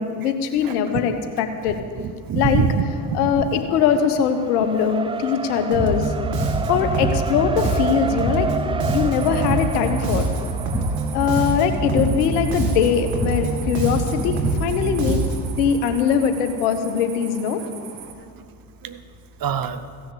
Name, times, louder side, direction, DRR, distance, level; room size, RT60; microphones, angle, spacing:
voice 1, 0.0-1.8 2.3-2.6 3.1-6.1 6.7-8.5 8.9-10.3 11.1-15.2 15.6-17.6, left 7 dB, 90° left, 8 dB, 1.2 m, -21 dB
voice 2, 2.0-3.5 18.8-19.0 19.4-19.8, right 7 dB, 50° right, 12 dB, 0.9 m, -24 dB
Race car auto racing, 2.9-13.9, right 4 dB, 15° right, 0.3 m, -32 dB
Bass guitar, 5.7-15.6, right 3 dB, 80° right, 2.1 m, -24 dB
sound 1, 9.1-18.1, right 7 dB, 65° right, 1.6 m, -40 dB
15.5 x 6.2 x 8.5 m, 2.3 s
hypercardioid pair, 65°, 44 cm